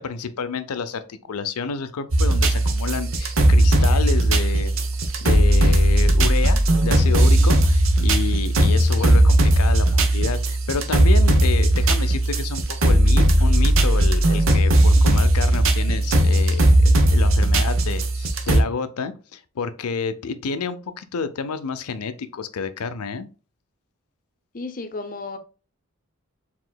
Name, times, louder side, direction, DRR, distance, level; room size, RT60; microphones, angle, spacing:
voice 1, 0.0-4.7 5.2-23.3, left 5 dB, 90° left, 0.5 m, -29 dB
sound 1, 2.1-18.6, right 1 dB, 65° right, 0.8 m, -17 dB
voice 2, 24.5-25.4, left 3 dB, 40° left, 0.6 m, -33 dB
4.8 x 3.6 x 2.2 m
head